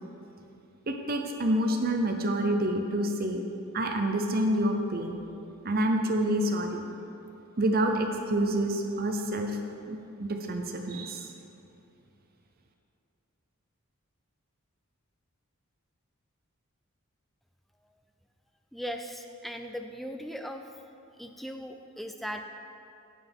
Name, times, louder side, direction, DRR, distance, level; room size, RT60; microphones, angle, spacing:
voice 1, 0.9-3.4 3.7-5.2 5.6-6.8 7.6-9.6 9.9-11.3, right 1 dB, 45° right, 4 dB, 0.6 m, -28 dB
voice 2, 18.7-20.7 21.2-22.5, equal, ahead, 5 dB, 0.4 m, -38 dB
9.4 x 9.2 x 3.5 m, 2.7 s
head